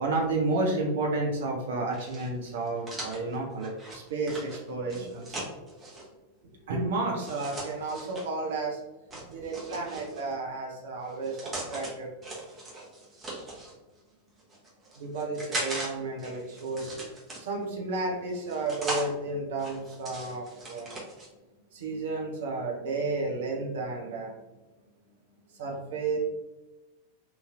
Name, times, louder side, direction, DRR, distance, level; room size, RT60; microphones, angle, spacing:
voice 1, 0.0-5.4 6.7-8.8 9.3-12.1 15.0-17.0 17.4-20.9 21.7-24.3 25.5-26.2, right 3 dB, 60° right, -1 dB, 0.6 m, -32 dB
sound 1, 1.9-6.0 7.2-8.3 9.1-10.3 11.0-11.9 12.2-13.7 14.4-15.9 16.2-17.7 18.3-19.1 19.6-21.3, right 1 dB, 20° right, 0.9 m, -39 dB
3.0 x 2.7 x 2.4 m, 1.1 s
figure-of-eight pair, 90°, 0 cm